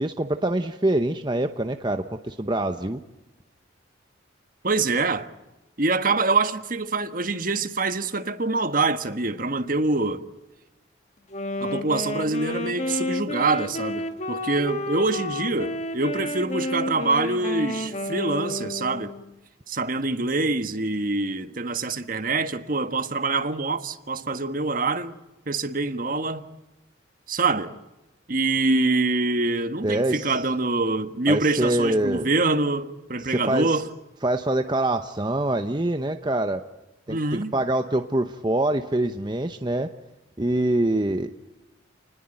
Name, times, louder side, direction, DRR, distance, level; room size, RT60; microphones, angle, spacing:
voice 1, 0.0-3.0 29.8-30.4 31.3-32.3 33.2-33.8 34.2-36.6 37.1-39.9 40.4-41.3, right 1 dB, 25° right, 0.9 m, -25 dB
voice 2, 4.6-5.3 5.8-10.2 11.6-19.1 19.7-25.1 25.5-26.4 27.3-27.7 28.3-33.9 37.1-37.5, right 3 dB, 45° right, 1.5 m, -25 dB
Wind instrument woodwind instrument, 11.3-19.3, left 1 dB, 35° left, 1.8 m, -31 dB
30.0 x 20.5 x 9.1 m
head